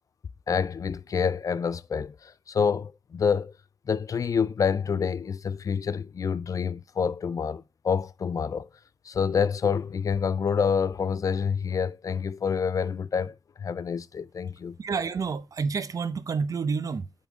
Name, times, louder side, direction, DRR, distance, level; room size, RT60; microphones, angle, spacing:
voice 1, 0.5-3.5 3.9-8.7 9.1-14.7, left 6 dB, 50° left, 0.4 m, -27 dB
voice 2, 14.8-17.1, right 5 dB, 55° right, 0.6 m, -29 dB
8.4 x 3.9 x 3.6 m
wide cardioid pair, 160°, 7 cm